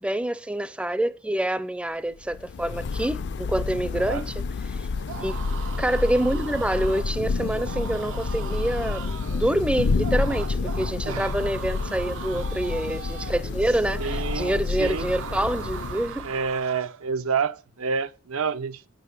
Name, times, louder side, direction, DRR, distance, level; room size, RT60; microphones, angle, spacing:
voice 1, 0.0-4.9 5.2-5.4 5.8-16.3, right 1 dB, 5° right, 0.4 m, -27 dB
Thunder / Rain, 2.2-16.5, left 4 dB, 55° left, 0.4 m, -29 dB
sound 1, 5.0-17.1, right 8 dB, 65° right, 0.4 m, -39 dB
voice 2, 14.0-15.1 16.2-18.9, right 5 dB, 90° right, 0.8 m, -28 dB
7.9 x 7.8 x 6.6 m
head